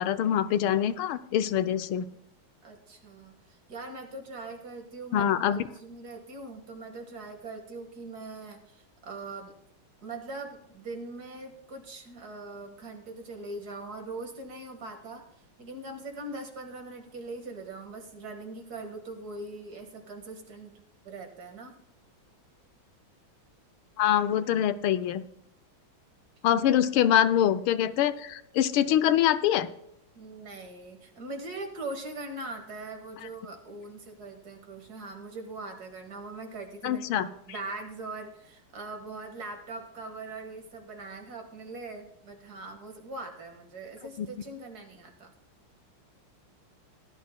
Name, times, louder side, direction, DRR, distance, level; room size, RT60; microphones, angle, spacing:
voice 1, 0.0-2.1 5.1-5.6 24.0-25.2 26.4-29.7 36.8-37.3 44.2-44.3, left 10 dB, 85° left, 13 dB, 1.5 m, -24 dB
voice 2, 2.6-9.5 10.0-15.2 15.6-20.7 21.0-21.8 26.5-26.6 30.2-45.3, right 2 dB, 50° right, 4 dB, 2.0 m, -41 dB
17.5 x 11.5 x 2.2 m, 0.78 s
omnidirectional pair, 2.3 m